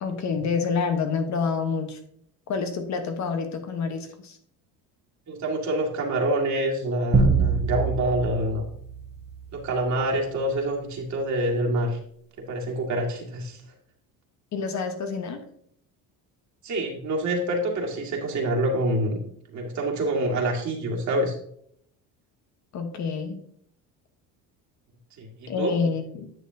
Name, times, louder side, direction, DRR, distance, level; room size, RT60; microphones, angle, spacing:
voice 1, 0.0-2.0 2.5-4.4 14.5-15.4 22.7-23.4 25.5-26.3, left 5 dB, 45° left, 6 dB, 1.2 m, -28 dB
voice 2, 5.3-8.6 9.5-12.0 12.4-13.6 16.6-19.2 19.5-21.4 25.2-25.8, right 1 dB, 45° right, -1 dB, 2.1 m, -26 dB
sound 1, 7.1-9.7, right 4 dB, 25° right, 1.4 m, -24 dB
10.0 x 6.6 x 2.8 m, 0.67 s
cardioid pair, 115°, 38 cm